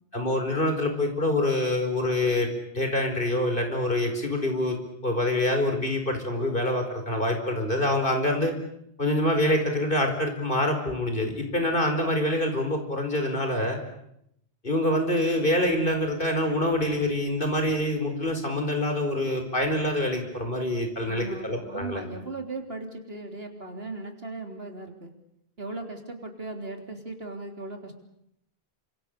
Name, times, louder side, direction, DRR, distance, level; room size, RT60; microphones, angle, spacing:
voice 1, 0.1-4.8 5.0-8.5 9.0-13.8 14.6-22.0, left 1 dB, 55° left, 5 dB, 5.2 m, -26 dB
voice 2, 21.1-25.1 25.6-28.0, right 2 dB, 65° right, 4 dB, 3.8 m, -37 dB
29.5 x 26.5 x 6.8 m, 0.78 s
omnidirectional pair, 1.1 m